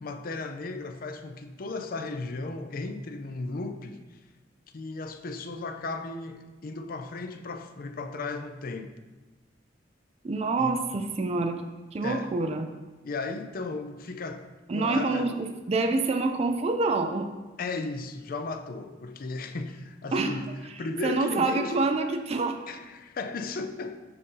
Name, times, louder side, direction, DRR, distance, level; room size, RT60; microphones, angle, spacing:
voice 1, 0.0-4.0 4.7-9.0 10.6-10.7 12.0-12.3 13.0-15.3 17.6-20.5 20.8-21.9 22.7-24.0, left 3 dB, 50° left, 0.5 m, -35 dB
voice 2, 10.2-11.6 11.9-12.7 14.7-17.3 20.1-20.4 21.0-22.6, right 3 dB, 35° right, 0.4 m, -27 dB
7.5 x 2.7 x 5.4 m
head